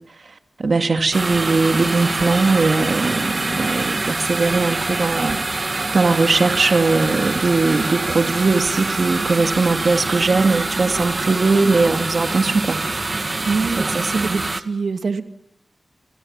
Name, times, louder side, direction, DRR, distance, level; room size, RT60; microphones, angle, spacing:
voice 1, 0.6-12.8 13.9-14.4, right 3 dB, 55° right, 7 dB, 2.3 m, -20 dB
sound 1, 1.1-14.6, right 2 dB, 35° right, 1.8 m, -25 dB
voice 2, 13.4-15.2, right 4 dB, 75° right, 8 dB, 2.5 m, -24 dB
28.0 x 28.0 x 7.4 m, 0.75 s
wide cardioid pair, 95°, 0 cm